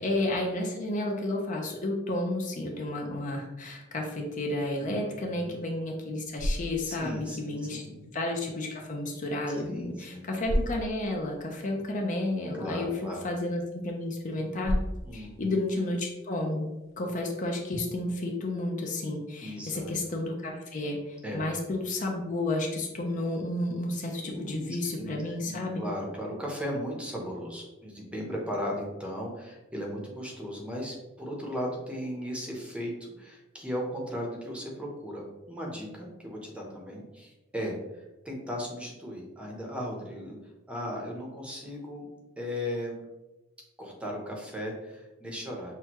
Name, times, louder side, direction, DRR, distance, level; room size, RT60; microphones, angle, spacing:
voice 1, 0.0-7.8 8.1-12.9 13.2-14.8 15.1-16.7 17.0-25.9, left 1 dB, 40° left, 1 dB, 0.6 m, -31 dB
voice 2, 4.8-5.6 6.8-7.9 9.7-10.3 12.5-13.3 15.0-15.5 19.4-19.9 21.2-21.5 24.2-40.4 40.7-42.1 42.4-43.0 43.8-45.7, equal, 5° right, -2 dB, 0.7 m, -37 dB
sound 1, 6.0-17.1, equal, 85° left, 0.5 m, -38 dB
5.9 x 2.3 x 2.9 m, 1.0 s
head